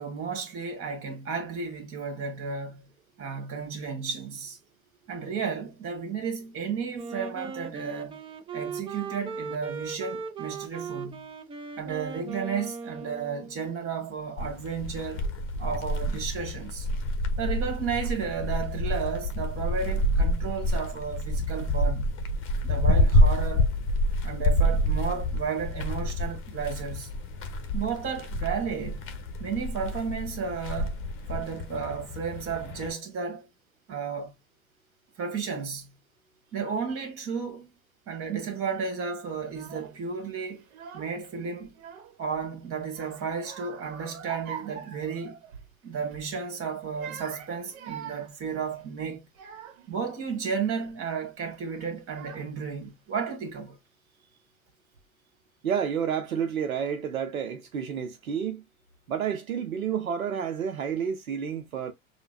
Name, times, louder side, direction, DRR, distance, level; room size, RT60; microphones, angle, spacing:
voice 1, 0.0-2.9 3.2-4.6 5.1-8.2 8.5-11.3 11.8-15.2 15.6-16.9 17.4-22.2 22.6-23.7 24.2-27.1 27.7-29.1 29.4-31.0 31.3-33.5 33.9-34.3 35.2-36.0 36.5-37.7 38.1-40.6 40.9-41.7 42.2-45.4 45.8-49.3 49.9-53.8, right 6 dB, 30° right, 1.8 m, -33 dB
Wind instrument woodwind instrument, 6.9-13.7, right 5 dB, 15° right, 0.5 m, -38 dB
sound 1, 14.4-32.9, left 1 dB, 30° left, 0.9 m, -28 dB
Child speech kid speaking / Crying sobbing, 39.4-40.0 40.6-41.3 41.6-42.4 42.9-45.7 46.1-46.3 46.8-50.0 50.6-51.0 51.7-51.8 52.1-52.8, right 8 dB, 50° right, 1.1 m, -44 dB
voice 2, 55.6-58.6 59.1-61.9, right 7 dB, 75° right, 0.8 m, -30 dB
6.7 x 2.3 x 2.4 m
figure-of-eight pair, 85°, 42 cm